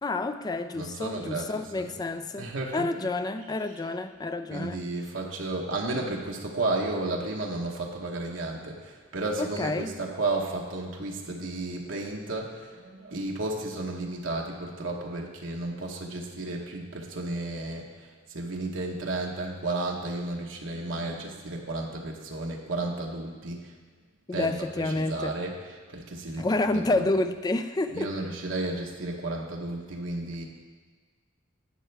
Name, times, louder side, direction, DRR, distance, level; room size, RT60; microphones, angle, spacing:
voice 1, 0.0-4.8 9.4-9.9 24.3-25.3 26.4-28.1, left 2 dB, 20° left, 9 dB, 0.4 m, -29 dB
voice 2, 0.7-1.9 2.4-3.1 4.5-23.7 24.3-26.5 26.7-27.1 27.9-30.5, right 2 dB, 75° right, -1 dB, 1.0 m, -33 dB
11.0 x 7.6 x 3.4 m, 1.5 s
head